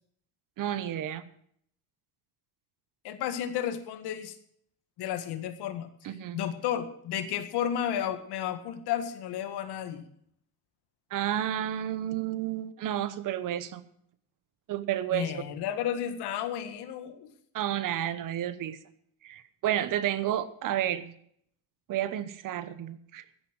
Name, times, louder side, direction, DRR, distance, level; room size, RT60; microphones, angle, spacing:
voice 1, 0.6-1.2 6.0-6.4 11.1-13.8 14.7-15.4 17.5-18.8 19.2-21.1 21.9-23.2, right 11 dB, 55° right, 14 dB, 1.1 m, -31 dB
voice 2, 3.0-4.4 5.0-10.0 15.1-17.3, left 10 dB, 75° left, 9 dB, 1.8 m, -32 dB
14.0 x 10.5 x 6.1 m, 0.66 s
cardioid pair, 150°, 39 cm